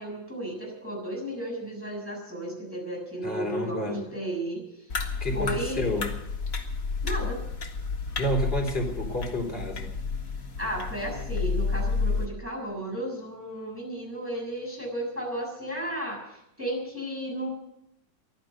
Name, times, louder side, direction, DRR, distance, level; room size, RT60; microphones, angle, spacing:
voice 1, 0.0-4.9 5.2-5.9 7.0-7.4 10.6-17.5, right 1 dB, 5° right, -2 dB, 6.9 m, -34 dB
voice 2, 3.2-4.0 5.2-6.1 8.2-9.9, equal, 30° left, 0 dB, 3.9 m, -29 dB
sound 1, 4.9-12.3, left 4 dB, 50° left, 2.0 m, -31 dB
15.5 x 12.0 x 7.9 m, 0.81 s
omnidirectional pair, 2.0 m